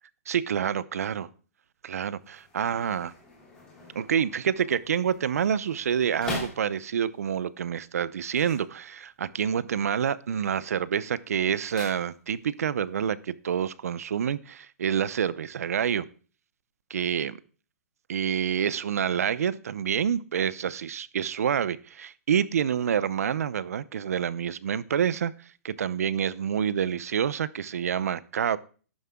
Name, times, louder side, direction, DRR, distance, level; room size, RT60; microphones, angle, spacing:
voice 1, 0.3-1.3 1.8-3.1 3.9-16.0 16.9-17.4 18.1-25.3 25.6-28.6, right 8 dB, 70° right, 19 dB, 0.6 m, -27 dB
sound 1, 2.2-7.2 8.2-9.4 9.7-10.2 10.5-12.6 12.9-13.0, left 3 dB, 10° left, 2.7 m, -42 dB
11.5 x 9.5 x 3.7 m, 0.39 s
hypercardioid pair, 175°, 8 cm